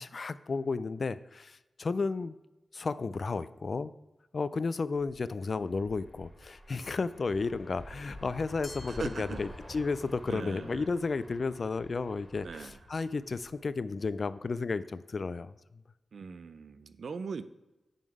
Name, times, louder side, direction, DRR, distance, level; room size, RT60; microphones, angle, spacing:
voice 1, 0.0-2.4 2.7-3.9 4.3-15.5, left 4 dB, 55° left, 15 dB, 0.3 m, -33 dB
sound 1, 5.0-14.2, left 1 dB, 15° left, 2.0 m, -49 dB
Glass, 8.6-10.1, left 2 dB, 30° left, 1.1 m, -51 dB
voice 2, 8.9-9.5 10.3-10.9 12.4-12.8 16.1-17.4, right 5 dB, 70° right, 12 dB, 0.4 m, -40 dB
9.2 x 3.8 x 4.8 m, 1.0 s
wide cardioid pair, 90°, 0 cm